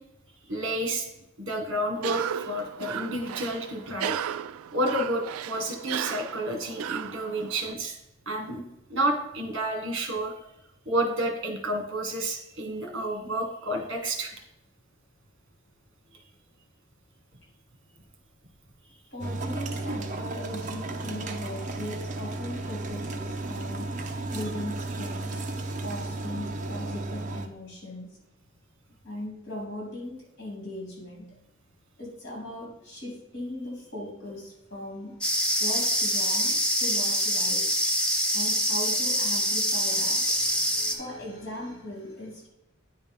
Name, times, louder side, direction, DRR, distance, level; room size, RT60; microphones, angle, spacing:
voice 1, 0.5-1.1 1.4-4.2 4.7-8.0 8.3-8.6 8.9-10.5 10.9-14.3, right 1 dB, 60° right, 4 dB, 1.8 m, -30 dB
Cough, 1.9-7.7, right 9 dB, 90° right, 0.3 m, -34 dB
voice 2, 19.1-23.9 24.3-25.4 25.8-28.1 29.0-31.3 32.0-35.2 35.6-37.7 38.3-42.5, left 1 dB, 50° left, -2 dB, 3.0 m, -38 dB
sound 1, 19.2-27.5, right 2 dB, 35° right, 0.7 m, -34 dB
sound 2, 35.2-40.9, equal, 5° left, 0.6 m, -25 dB
9.3 x 4.1 x 5.3 m, 0.88 s
head